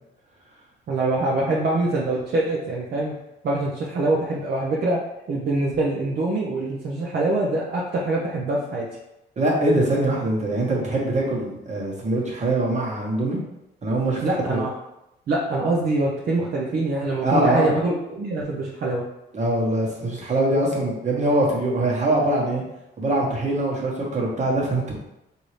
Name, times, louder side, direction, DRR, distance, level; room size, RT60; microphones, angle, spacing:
voice 1, 0.9-3.1 3.4-5.0 5.3-8.9 14.2-14.7 15.3-19.0, right 2 dB, 55° right, -4 dB, 0.7 m, -24 dB
voice 2, 9.4-13.4 13.8-14.6 17.2-17.7 19.3-22.6 23.0-25.0, right 1 dB, 35° right, -3 dB, 1.3 m, -23 dB
3.9 x 2.7 x 3.2 m, 0.89 s
cardioid pair, 90°, 20 cm